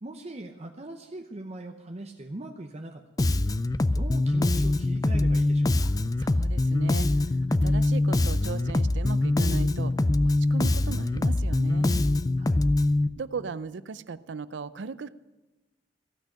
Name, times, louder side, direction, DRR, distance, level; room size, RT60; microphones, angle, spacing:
voice 1, 0.0-3.0 3.3-3.4 3.9-5.9 12.4-12.6, right 2 dB, 35° right, 4 dB, 0.8 m, -41 dB
Bass guitar, 3.2-13.1, left 2 dB, 20° left, 0.4 m, -24 dB
voice 2, 6.2-9.9 10.2-12.0 13.2-15.1, right 4 dB, 85° right, 16 dB, 0.5 m, -37 dB
15.5 x 6.4 x 9.8 m, 1.1 s
head